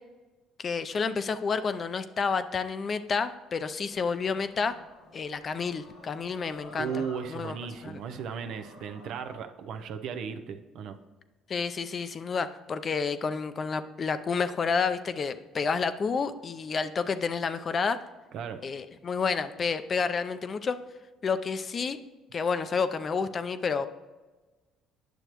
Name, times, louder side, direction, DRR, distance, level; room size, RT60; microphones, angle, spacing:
voice 1, 0.6-4.8 5.1-7.0 7.3-7.6 7.8-8.0 11.5-18.0 18.6-20.8 21.2-22.0 22.3-23.9, left 5 dB, 45° left, 11 dB, 0.5 m, -30 dB
sound 1, 3.9-9.4, left 2 dB, 85° left, 2.3 m, -51 dB
voice 2, 6.8-11.0 18.3-18.6, right 6 dB, 70° right, 8 dB, 0.6 m, -36 dB
9.1 x 6.6 x 3.0 m, 1.2 s
supercardioid pair, 80°, 0 cm